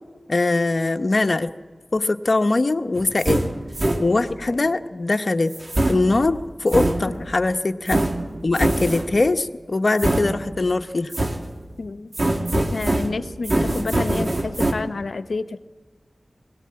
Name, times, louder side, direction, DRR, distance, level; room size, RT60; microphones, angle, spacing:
voice 1, 0.3-1.5 1.9-3.4 4.0-5.5 5.9-8.0 8.4-11.1, left 2 dB, 55° left, 7 dB, 0.9 m, -21 dB
sound 1, 3.0-4.5 5.5-7.4 7.9-9.3 10.0-10.8 11.1-11.8 12.1-14.7, right 1 dB, 45° right, 2.2 m, -24 dB
voice 2, 11.8-12.1 12.5-15.6, left 3 dB, 90° left, 12 dB, 0.8 m, -29 dB
20.5 x 18.0 x 8.7 m, 1.3 s
wide cardioid pair, 60°, 0 cm